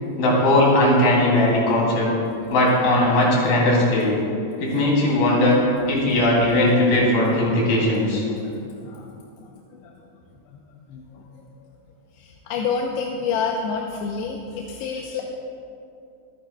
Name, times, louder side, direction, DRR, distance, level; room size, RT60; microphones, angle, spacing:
voice 1, 0.2-2.1 2.5-4.2 4.6-5.6 5.9-8.2, left 1 dB, 65° left, -4 dB, 4.2 m, -18 dB
voice 2, 1.8-2.6 6.5-6.6 7.2-7.5 8.4-9.9 10.5-10.6 10.9-11.2 11.6-11.7 12.1-15.2, left 5 dB, 85° left, 0 dB, 2.8 m, -30 dB
25.5 x 9.3 x 2.2 m, 2.6 s
omnidirectional pair, 4.8 m